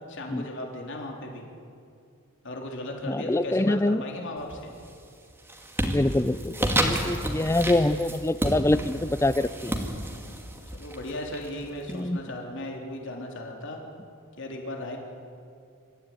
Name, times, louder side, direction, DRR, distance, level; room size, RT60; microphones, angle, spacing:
voice 1, 0.1-1.4 2.4-4.7 10.0-10.4 10.8-13.8 14.4-15.0, left 1 dB, 60° left, 1 dB, 3.7 m, -36 dB
voice 2, 3.1-4.0 5.8-9.8 11.9-12.2, left 1 dB, 15° left, 14 dB, 0.5 m, -25 dB
sound 1, 4.4-4.9 5.3-11.9, right 1 dB, 10° right, 2.2 m, -31 dB
26.5 x 14.0 x 9.6 m, 2.4 s
head